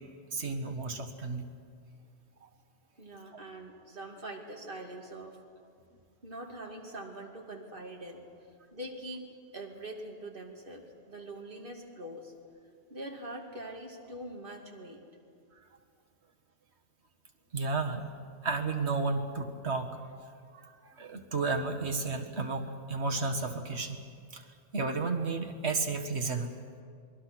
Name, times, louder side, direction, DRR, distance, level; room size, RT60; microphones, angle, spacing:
voice 1, 0.3-1.5 2.4-2.5 17.5-18.1 18.4-20.0 20.5-24.0 24.3-24.5 24.7-26.5, right 3 dB, 85° right, 4 dB, 1.9 m, -32 dB
voice 2, 3.0-5.4 6.2-8.2 8.7-12.3 12.9-15.1, right 1 dB, 55° right, 1 dB, 2.7 m, -43 dB
27.5 x 21.0 x 6.1 m, 2.2 s
omnidirectional pair, 1.1 m